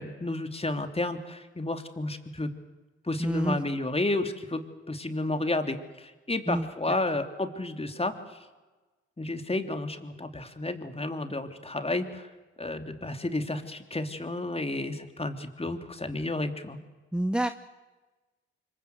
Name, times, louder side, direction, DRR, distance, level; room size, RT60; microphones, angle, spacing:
voice 1, 0.0-2.5 3.0-8.1 9.2-12.3 12.6-16.8, left 2 dB, 20° left, 7 dB, 3.1 m, -31 dB
voice 2, 3.2-3.6 6.5-6.7 17.1-17.5, right 1 dB, 5° right, 12 dB, 1.0 m, -27 dB
25.5 x 23.5 x 8.1 m, 1.2 s
hypercardioid pair, 45°, 29 cm